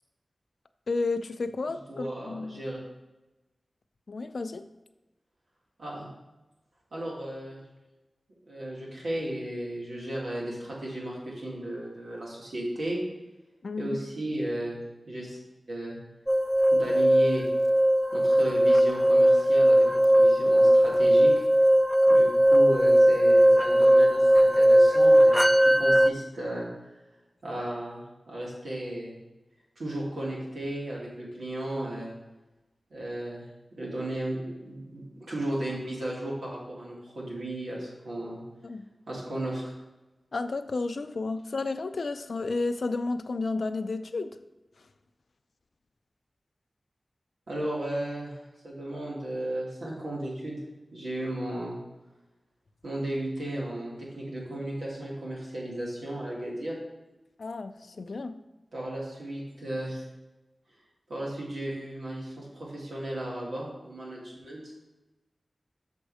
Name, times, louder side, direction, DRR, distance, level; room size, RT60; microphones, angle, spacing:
voice 1, 0.9-2.7 4.1-4.6 13.6-14.0 38.6-38.8 40.3-44.4 57.4-58.4, left 3 dB, 75° left, 10 dB, 0.5 m, -32 dB
voice 2, 1.9-2.8 5.8-6.1 6.9-7.6 8.5-13.0 13.8-14.8 15.1-15.4 15.7-16.0 16.7-17.5 18.1-21.3 22.1-26.7 27.4-28.0 28.3-29.2 29.8-32.1 32.9-38.4 39.1-39.7 47.5-50.6 50.9-51.8 52.8-56.8 58.7-60.0 61.1-64.6, right 1 dB, 90° right, -5 dB, 2.5 m, -34 dB
sound 1, 16.3-26.1, equal, 5° right, 0.4 m, -19 dB
7.1 x 5.3 x 5.0 m, 1.1 s
wide cardioid pair, 55°, 0 cm